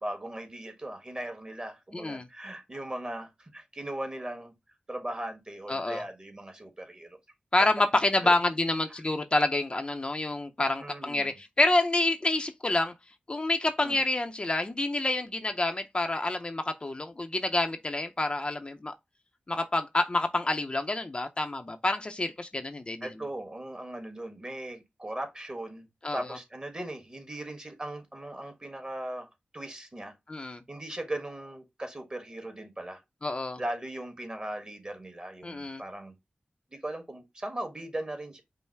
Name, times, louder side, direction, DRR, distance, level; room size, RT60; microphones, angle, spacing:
voice 1, 0.0-4.5 4.9-7.2 8.2-8.3 10.8-11.4 13.8-14.0 23.0-25.9 26.1-30.1 30.7-33.0 33.6-36.1 36.7-38.4, right 1 dB, 30° right, 1.5 m, -38 dB
voice 2, 1.9-2.3 5.7-6.0 7.5-12.9 13.3-18.9 19.5-23.1 26.0-26.3 30.3-30.6 33.2-33.6 35.4-35.8, left 2 dB, 35° left, 0.6 m, -28 dB
5.5 x 2.0 x 4.5 m
wide cardioid pair, 65°, 3 cm